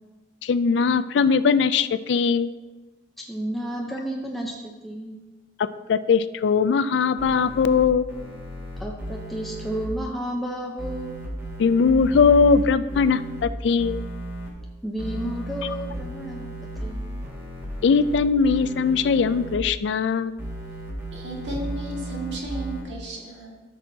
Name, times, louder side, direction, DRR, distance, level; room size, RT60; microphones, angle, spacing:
voice 1, 0.4-2.5 5.9-8.1 11.6-14.0 17.8-20.3, left 5 dB, 70° left, 14 dB, 0.3 m, -20 dB
voice 2, 3.2-5.2 8.8-11.1 14.8-17.0, right 1 dB, ahead, -2 dB, 0.6 m, -32 dB
sound 1, 7.2-9.9 10.8-13.4 13.8-14.5 15.0-18.2 18.4-19.5 20.4-22.8, right 1 dB, 15° right, 1.9 m, -35 dB
voice 3, 21.1-23.5, right 1 dB, 90° right, -1 dB, 1.9 m, -33 dB
14.0 x 6.2 x 2.7 m, 1.2 s
head